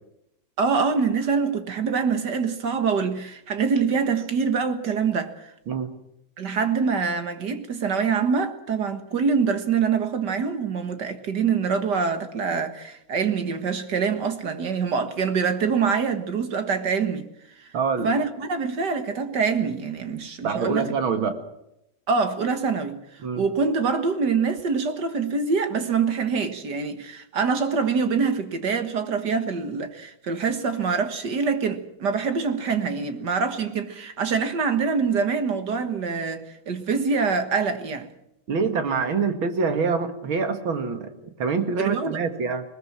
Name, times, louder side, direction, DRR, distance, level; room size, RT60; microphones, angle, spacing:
voice 1, 0.6-5.5 6.4-17.3 17.6-17.7 18.0-20.9 22.1-38.1 41.8-42.2, right 5 dB, 55° right, 2.1 m, -25 dB
voice 2, 17.7-18.1 20.4-21.3 23.2-23.4 38.5-42.6, right 5 dB, 80° right, 2.7 m, -25 dB
20.5 x 20.5 x 7.5 m
omnidirectional pair, 2.2 m